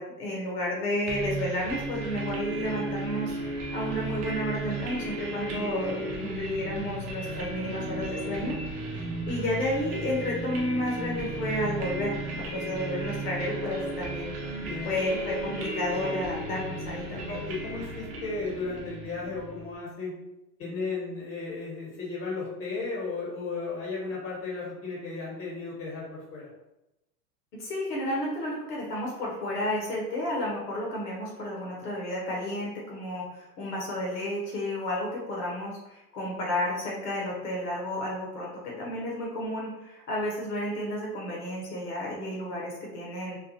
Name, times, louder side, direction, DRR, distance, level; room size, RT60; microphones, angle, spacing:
voice 1, 0.0-8.6 8.9-17.4 27.6-43.4, left 1 dB, 70° left, -3 dB, 1.0 m, -32 dB
sound 1, 1.1-19.8, right 2 dB, 20° right, 0.3 m, -35 dB
voice 2, 17.1-20.1 20.6-26.5, left 3 dB, 25° left, -5 dB, 1.4 m, -35 dB
2.5 x 2.4 x 2.7 m, 0.92 s
hypercardioid pair, 95°, 49 cm